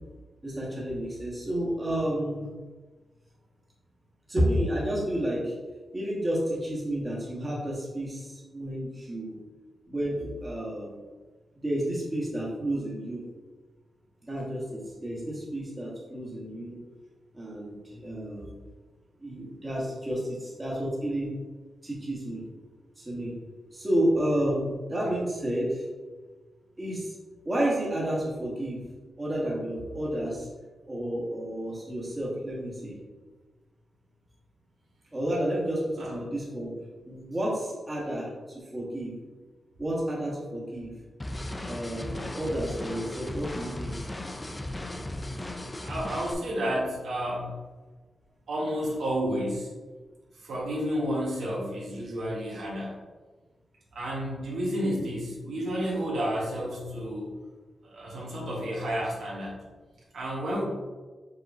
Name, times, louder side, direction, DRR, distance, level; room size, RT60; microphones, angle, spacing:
voice 1, 0.4-2.5 4.3-5.5 5.9-9.3 9.9-11.0 11.6-13.2 14.2-16.8 17.3-18.5 19.2-21.4 21.8-22.4 23.0-23.3 23.7-25.8 26.8-27.1 27.4-28.8 29.2-30.5 30.8-32.9 35.1-36.7 37.0-39.1 39.8-40.9 41.6-44.1, right 1 dB, 20° right, -5 dB, 1.2 m, -31 dB
sound 1, 41.2-46.3, left 1 dB, 15° left, 0.3 m, -36 dB
voice 2, 45.8-47.5 48.5-49.7 50.4-53.0 53.9-57.3 57.8-59.6 60.1-60.6, equal, 80° right, -4 dB, 1.3 m, -31 dB
5.2 x 3.6 x 2.6 m, 1.3 s
wide cardioid pair, 140°, 0 cm